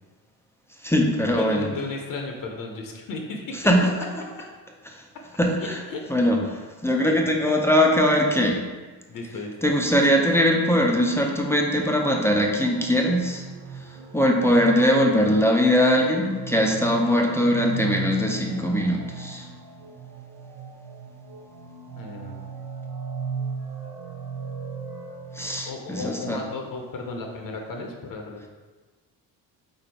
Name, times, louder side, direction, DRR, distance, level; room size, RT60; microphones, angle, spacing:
voice 1, 0.8-1.7 3.6-3.9 4.9-5.0 5.4-5.8 6.1-8.6 9.6-13.5 13.7-19.5 25.3-26.4, equal, 5° left, 0 dB, 0.5 m, -21 dB
voice 2, 1.3-3.6 5.6-6.0 7.0-7.2 9.1-9.5 21.9-22.4 25.6-28.5, left 3 dB, 55° left, 1 dB, 0.7 m, -34 dB
sound 1, 11.0-25.7, right 5 dB, 75° right, 0.6 m, -37 dB
3.9 x 2.6 x 4.4 m, 1.3 s
cardioid pair, 80°, 40 cm